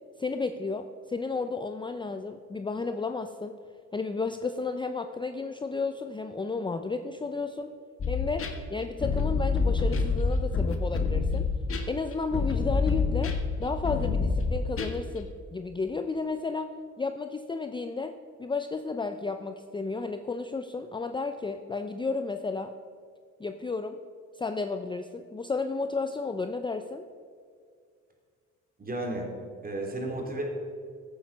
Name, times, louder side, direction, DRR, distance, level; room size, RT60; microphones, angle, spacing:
voice 1, 0.2-3.6 3.9-7.7 8.1-11.5 11.9-13.3 13.6-16.7 17.0-22.7 23.4-24.0 24.4-27.1, left 4 dB, 15° left, 8 dB, 0.5 m, -32 dB
sound 1, 8.0-15.2, left 4 dB, 45° left, 1.6 m, -27 dB
voice 2, 28.8-29.3 29.6-30.4, right 2 dB, 30° right, 0 dB, 3.4 m, -33 dB
14.5 x 8.7 x 5.5 m, 2.1 s
cardioid pair, 90°, 30 cm